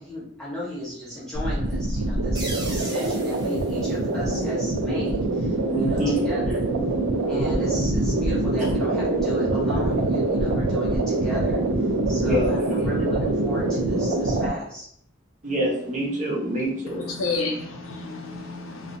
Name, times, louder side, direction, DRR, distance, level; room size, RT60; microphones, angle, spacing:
voice 1, 0.0-6.6 7.3-14.9, equal, 5° left, 1.0 m, -35 dB
sound 1, 1.3-14.5, right 2 dB, 80° right, 0.4 m, -24 dB
sound 2, 2.3-4.9, right 2 dB, 20° right, 0.4 m, -40 dB
voice 2, 5.7-6.2 12.2-12.7 15.4-17.1, right 1 dB, 40° right, 0.8 m, -26 dB
voice 3, 16.9-19.0, left 3 dB, 75° left, 0.5 m, -30 dB
2.4 x 2.1 x 2.5 m
head